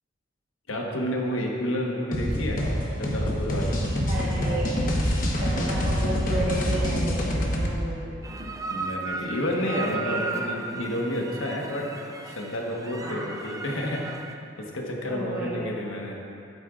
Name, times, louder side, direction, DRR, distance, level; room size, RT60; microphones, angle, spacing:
voice 1, 0.7-2.6 3.0-3.8 8.7-11.9 12.2-14.1 14.6-16.2, left 1 dB, 90° left, -1 dB, 1.3 m, -30 dB
sound 1, 2.1-7.7, equal, 45° left, 1.1 m, -26 dB
voice 2, 4.1-5.1 5.4-8.1 8.4-8.5 9.7-10.6 13.0-13.3 15.0-15.8, right 1 dB, 50° right, -7 dB, 1.3 m, -32 dB
sound 2, 8.2-14.3, right 4 dB, 15° right, 0.4 m, -35 dB
13.0 x 8.1 x 2.5 m, 2.7 s
head